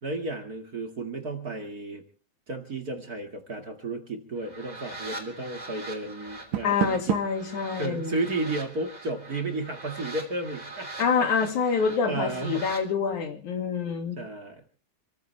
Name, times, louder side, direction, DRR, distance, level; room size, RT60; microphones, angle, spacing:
voice 1, 0.0-2.0 2.5-7.2 7.7-11.8 12.0-12.6 14.2-14.6, right 2 dB, 35° right, 4 dB, 1.8 m, -33 dB
sound 1, 4.3-12.8, right 2 dB, 10° right, 2.6 m, -42 dB
Door, 6.3-7.5, right 12 dB, 70° right, 1.9 m, -31 dB
voice 2, 6.6-8.2 11.0-14.2, left 6 dB, 60° left, 6 dB, 3.4 m, -26 dB
28.5 x 14.0 x 3.3 m, 0.37 s
omnidirectional pair, 4.1 m